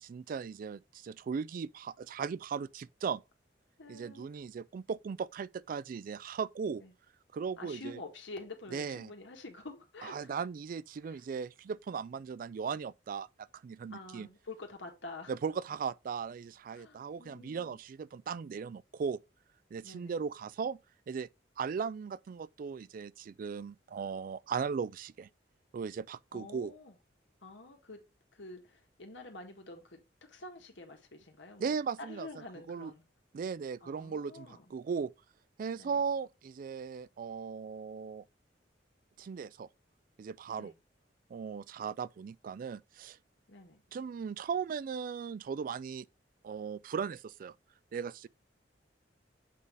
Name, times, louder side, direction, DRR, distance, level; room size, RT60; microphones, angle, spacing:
voice 1, 0.0-3.2 3.9-6.8 7.3-8.0 8.7-9.1 10.0-14.3 15.3-19.2 19.7-20.8 21.1-21.3 21.6-25.3 25.7-26.7 31.6-32.3 32.7-32.9 33.3-35.1 35.6-38.2 39.2-39.7 40.2-40.7 41.3-43.2 43.9-46.1 46.4-47.5 47.9-48.3, right 6 dB, 50° right, 0.3 m, -37 dB
voice 2, 3.8-4.3 6.8-6.9 7.6-10.4 11.0-11.2 13.9-15.3 16.7-17.8 19.8-20.2 26.3-27.0 27.4-28.0 28.3-30.0 30.3-33.0 33.8-34.7 35.8-36.0 40.6-40.7 43.5-43.8, left 2 dB, 90° left, 1.7 m, -48 dB
7.5 x 4.0 x 3.3 m
head